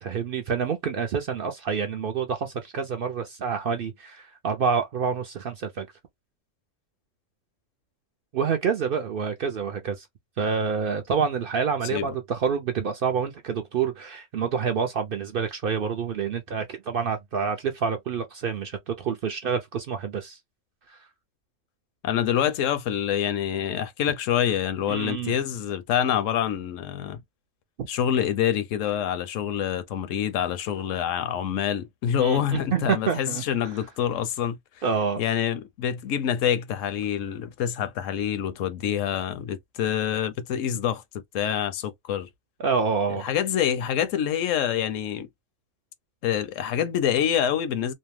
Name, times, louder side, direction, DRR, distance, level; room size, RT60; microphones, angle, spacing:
voice 1, 0.0-5.9 8.3-10.1 10.4-20.4 20.9-21.0 24.9-25.3 32.2-33.7 34.8-35.2 42.6-43.3, right 6 dB, 60° right, 0.6 m, -27 dB
voice 2, 22.0-27.2 27.9-34.6 35.2-41.0 41.3-42.3 43.1-45.3 46.2-47.9, left 9 dB, 80° left, 0.9 m, -26 dB
2.7 x 2.1 x 3.0 m
omnidirectional pair, 1.3 m